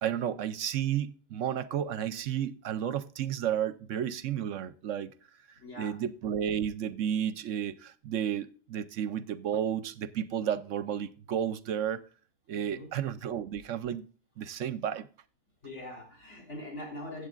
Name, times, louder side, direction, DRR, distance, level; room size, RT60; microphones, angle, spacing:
voice 1, 0.0-5.1 5.8-12.0 12.5-14.1 14.4-15.1, right 9 dB, 70° right, 1.0 m, -32 dB
voice 2, 5.6-6.0 12.5-12.9 15.6-17.3, left 1 dB, 60° left, 3.9 m, -42 dB
15.5 x 8.3 x 2.4 m
omnidirectional pair, 1.4 m